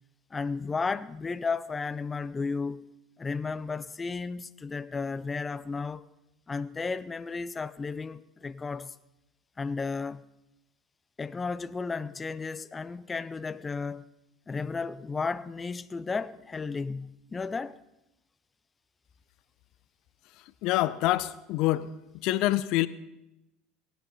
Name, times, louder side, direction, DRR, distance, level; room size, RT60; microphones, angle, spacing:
voice 1, 0.3-2.8 3.2-6.1 6.5-8.9 9.6-10.2 11.2-14.0 14.5-17.8, left 4 dB, 20° left, 0.6 m, -33 dB
voice 2, 20.6-21.9 22.2-22.9, left 16 dB, 60° left, 0.6 m, -26 dB
17.5 x 10.5 x 5.6 m
hypercardioid pair, 75°, 0 cm